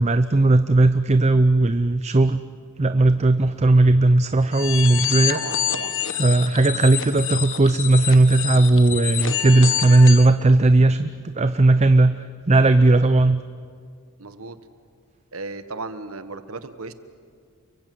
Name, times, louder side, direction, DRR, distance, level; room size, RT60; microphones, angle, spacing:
voice 1, 0.0-2.4 2.8-5.4 6.2-13.4, right 2 dB, 30° right, 10 dB, 0.6 m, -17 dB
sound 1, 4.5-10.3, left 10 dB, 60° left, 1.4 m, -27 dB
voice 2, 5.3-5.9 14.2-14.6 15.3-16.9, right 3 dB, 70° right, 11 dB, 1.3 m, -35 dB
29.5 x 23.0 x 7.8 m, 2.2 s
head